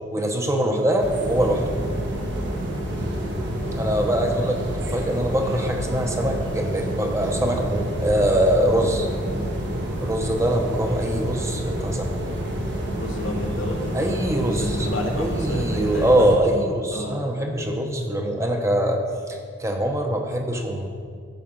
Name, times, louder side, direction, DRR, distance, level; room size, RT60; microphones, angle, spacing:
voice 1, 0.1-1.6 3.8-9.1 10.0-12.1 13.9-14.9 15.2-19.0 19.3-20.9, right 1 dB, 15° right, 3 dB, 0.9 m, -23 dB
sound 1, 1.0-16.3, equal, 70° right, 1.7 m, -28 dB
voice 2, 2.9-3.5 12.9-16.3 16.9-17.2, left 1 dB, 85° left, 0 dB, 1.6 m, -32 dB
14.5 x 5.0 x 5.8 m, 2.1 s
head